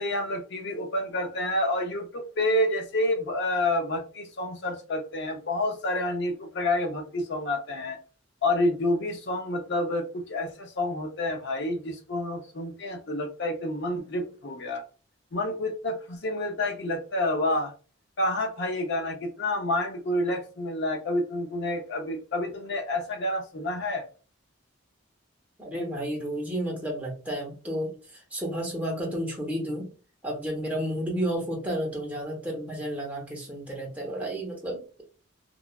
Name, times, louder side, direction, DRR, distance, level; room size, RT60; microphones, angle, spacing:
voice 1, 0.0-8.0 8.4-14.8 15.3-17.7 18.2-24.0, left 1 dB, 55° left, 0.5 m, -29 dB
voice 2, 25.6-29.9 30.2-35.0, equal, 5° right, 0.8 m, -32 dB
3.0 x 2.3 x 2.2 m
head